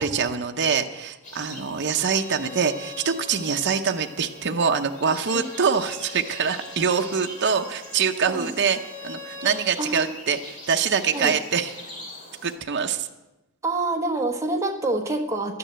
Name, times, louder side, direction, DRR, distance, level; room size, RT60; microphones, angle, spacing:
voice 1, 0.0-8.8 9.0-11.7 12.4-13.1, right 6 dB, 55° right, 4 dB, 0.7 m, -24 dB
sound 1, 1.2-12.6, left 1 dB, 40° left, 2.7 m, -44 dB
Bowed string instrument, 2.0-9.6, left 2 dB, 15° left, 4.1 m, -43 dB
voice 2, 9.8-10.1 11.1-11.3 13.6-15.6, right 2 dB, 15° right, 1 dB, 1.3 m, -27 dB
12.0 x 9.8 x 7.5 m, 1.0 s
head